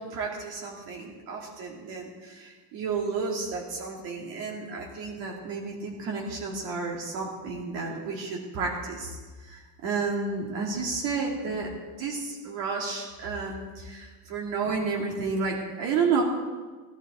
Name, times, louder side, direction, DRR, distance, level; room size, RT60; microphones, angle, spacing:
voice 1, 0.0-9.2 9.4-16.2, right 4 dB, 70° right, -1 dB, 2.4 m, -31 dB
18.5 x 11.5 x 4.3 m, 1.4 s
cardioid pair, 160°, 36 cm